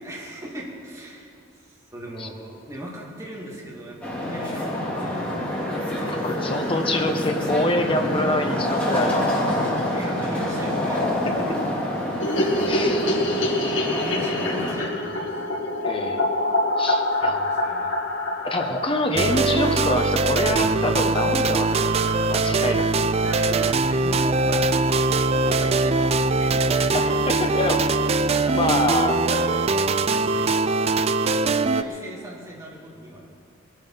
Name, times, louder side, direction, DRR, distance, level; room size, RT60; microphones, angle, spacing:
voice 1, 0.0-5.3 6.7-7.1 9.9-11.0 12.4-13.2 13.7-15.4 17.1-17.9 23.2-27.2 27.5-27.7 28.3-30.9 31.2-33.2, right 1 dB, 15° right, -4 dB, 2.5 m, -38 dB
sound 1, 4.0-14.7, left 1 dB, 5° left, 3.0 m, -26 dB
voice 2, 6.0-9.5 12.7-13.0 15.8-16.3 16.8-17.4 18.4-21.9 22.3-23.1 26.9-28.0 28.5-29.2, left 2 dB, 25° left, 4 dB, 1.2 m, -26 dB
sound 2, 12.2-20.4 20.7-20.8 21.0-21.1 21.4-21.5 21.7-22.3, left 1 dB, 70° left, 2.2 m, -26 dB
sound 3, 19.1-31.8, right 3 dB, 30° right, 0.4 m, -22 dB
21.5 x 9.1 x 5.8 m, 2.4 s
head